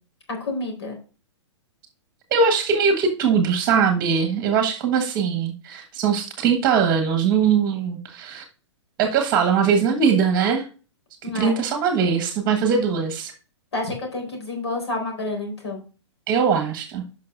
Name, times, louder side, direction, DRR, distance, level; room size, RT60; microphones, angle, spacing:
voice 1, 0.3-1.0 11.2-11.5 13.7-15.8, left 2 dB, 65° left, 2 dB, 4.3 m, -29 dB
voice 2, 2.3-8.4 9.0-10.6 11.2-13.3 16.3-17.0, right 6 dB, 25° right, 5 dB, 1.4 m, -21 dB
12.0 x 5.7 x 2.5 m, 0.35 s
figure-of-eight pair, 110°, 15 cm